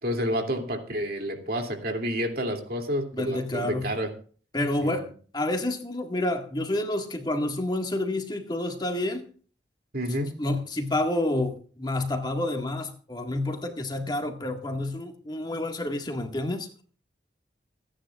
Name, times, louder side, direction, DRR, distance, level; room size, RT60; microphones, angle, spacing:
voice 1, 0.0-4.1 4.8-5.0 9.9-10.3, equal, 55° right, 2.7 m, -29 dB
voice 2, 3.1-3.9 4.5-9.3 10.4-16.7, left 1 dB, 25° left, 1.8 m, -29 dB
27.5 x 10.0 x 2.4 m
head